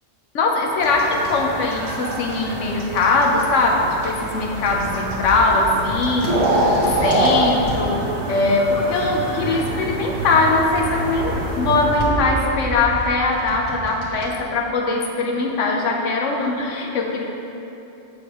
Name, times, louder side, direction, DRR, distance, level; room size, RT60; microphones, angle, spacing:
voice 1, 0.3-17.2, left 3 dB, 80° left, 0 dB, 1.1 m, -21 dB
sound 1, 0.8-12.1, right 1 dB, 70° right, 1.4 m, -25 dB
sound 2, 4.1-7.9 8.6-9.9 10.2-14.3, equal, 65° left, 1.8 m, -31 dB
8.2 x 7.0 x 3.0 m, 3.0 s
omnidirectional pair, 1.3 m